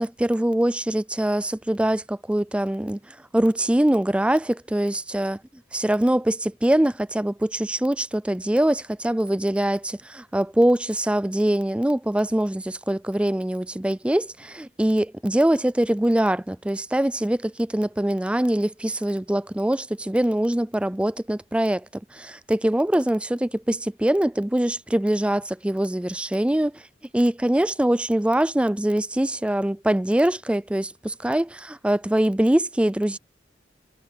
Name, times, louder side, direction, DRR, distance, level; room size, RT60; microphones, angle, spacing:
voice 1, 0.0-5.4 5.7-21.9 22.1-26.8 27.1-33.2, right 1 dB, 5° right, 0.4 m, -23 dB
head